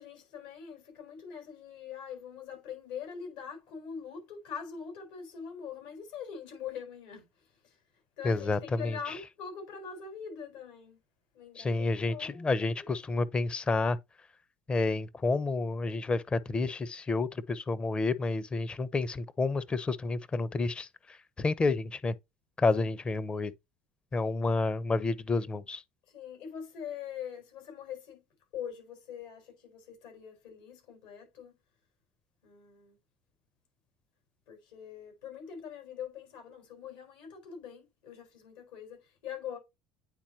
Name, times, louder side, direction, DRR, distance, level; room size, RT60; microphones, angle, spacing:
voice 1, 0.0-11.0 11.3-13.0 22.8-23.0 26.1-28.2 28.5-31.6 32.4-33.0 34.5-39.6, left 7 dB, 75° left, 4.5 m, -43 dB
voice 2, 8.2-9.0 11.6-14.0 14.7-20.9 21.4-22.1 22.6-23.5 24.1-25.8, left 3 dB, 25° left, 0.8 m, -29 dB
9.1 x 4.1 x 2.8 m
hypercardioid pair, 75°, 4 cm